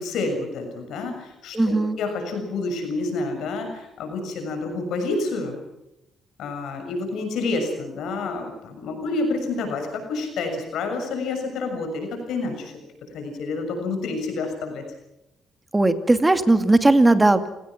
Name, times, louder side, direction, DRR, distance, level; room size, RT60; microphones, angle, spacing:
voice 1, 0.0-5.6 6.4-12.7 13.1-14.8, left 3 dB, 80° left, 5 dB, 6.6 m, -28 dB
voice 2, 1.5-2.0 15.7-17.5, right 2 dB, 15° right, 8 dB, 2.4 m, -18 dB
30.0 x 19.0 x 6.0 m, 0.90 s
cardioid pair, 90°, 0 cm